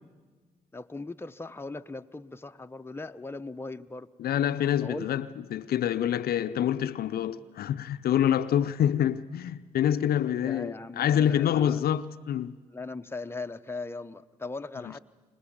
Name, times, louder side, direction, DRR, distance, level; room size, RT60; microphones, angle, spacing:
voice 1, 0.7-4.1 4.8-5.1 10.4-11.8 12.7-15.0, left 3 dB, 15° left, 0.8 m, -39 dB
voice 2, 4.2-12.5 14.8-14.9, left 10 dB, 60° left, 0.6 m, -26 dB
25.5 x 20.0 x 7.3 m
hypercardioid pair, 50°, 17 cm